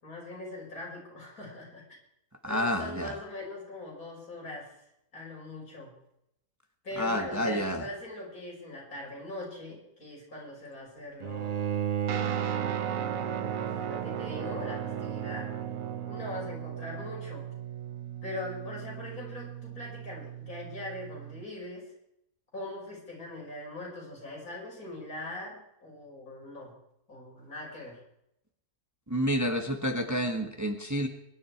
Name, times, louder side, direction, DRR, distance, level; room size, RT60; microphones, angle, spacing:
voice 1, 0.0-1.8 2.5-4.8 5.1-5.9 6.8-11.8 12.3-15.5 16.1-17.5 18.2-21.9 22.5-26.7 27.1-28.0, left 2 dB, 80° left, -3 dB, 6.0 m, -41 dB
voice 2, 2.4-3.1 7.0-7.8 29.1-31.1, equal, 15° right, 5 dB, 1.3 m, -29 dB
Bowed string instrument, 11.2-16.4, right 9 dB, 50° right, 0.4 m, -34 dB
Guitar, 12.1-21.5, right 9 dB, 70° right, 1.2 m, -38 dB
22.0 x 11.0 x 4.6 m, 0.79 s
omnidirectional pair, 1.5 m